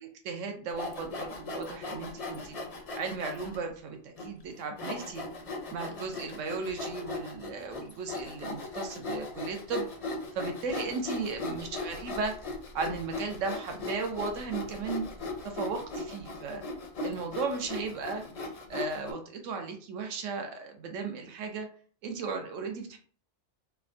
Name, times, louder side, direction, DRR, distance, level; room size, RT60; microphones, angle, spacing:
voice 1, 0.0-2.6 2.9-5.3 5.7-9.9 10.3-12.4 12.7-15.1 15.4-16.6 17.0-18.3 18.7-21.7 22.0-23.0, right 4 dB, 90° right, 5 dB, 1.0 m, -36 dB
Sawing, 0.7-3.6 4.2-4.3 4.8-19.1, left 3 dB, 50° left, 0.4 m, -38 dB
3.4 x 2.1 x 2.4 m, 0.44 s
omnidirectional pair, 1.3 m